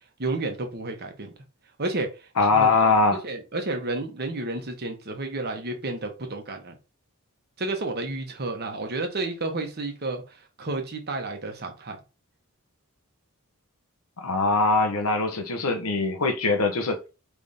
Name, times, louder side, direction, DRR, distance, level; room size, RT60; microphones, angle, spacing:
voice 1, 0.2-1.3 1.8-2.7 3.2-6.8 7.6-12.0, right 2 dB, 50° right, 1.0 m, -31 dB
voice 2, 2.4-3.2 14.2-17.0, left 3 dB, 80° left, 0.8 m, -22 dB
5.0 x 3.4 x 2.7 m
head